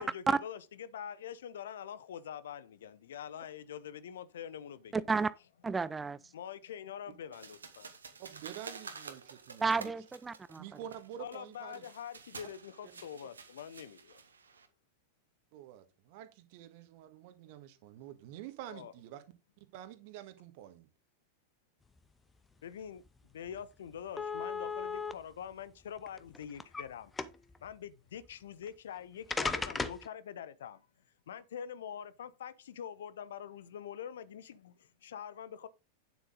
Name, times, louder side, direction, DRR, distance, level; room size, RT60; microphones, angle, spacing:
voice 1, 0.0-5.2 6.3-7.9 11.2-14.2 18.7-18.9 22.6-23.0 23.3-27.1 27.6-30.8 31.3-35.7, left 9 dB, 60° left, 0.7 m, -45 dB
voice 2, 4.9-5.3 5.6-6.2 9.6-10.6, right 4 dB, 15° right, 0.4 m, -31 dB
sound 1, 7.3-14.7, right 5 dB, 70° right, 1.5 m, -50 dB
voice 3, 8.2-9.9 10.6-11.8 12.8-12.9 15.5-19.2 19.7-20.9, right 11 dB, 50° right, 1.6 m, -48 dB
sound 2, 23.1-23.2 23.5-23.6 24.2-25.1 26.0-26.8 27.2-27.6 28.7-28.8 29.3-30.1, left 4 dB, 10° left, 0.8 m, -35 dB
9.3 x 7.6 x 3.8 m
figure-of-eight pair, 90°, 0 cm